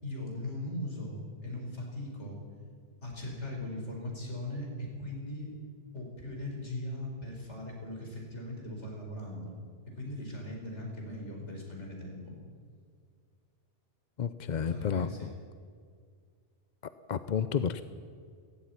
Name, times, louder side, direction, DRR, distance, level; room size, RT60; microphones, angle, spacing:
voice 1, 0.0-2.4 3.0-5.5 5.9-9.5 9.9-12.4 14.6-15.3, left 1 dB, 85° left, 0 dB, 5.1 m, -39 dB
voice 2, 14.2-15.3 16.8-17.8, left 7 dB, 50° left, 12 dB, 0.7 m, -31 dB
17.5 x 15.5 x 9.6 m, 2.1 s
omnidirectional pair, 1.2 m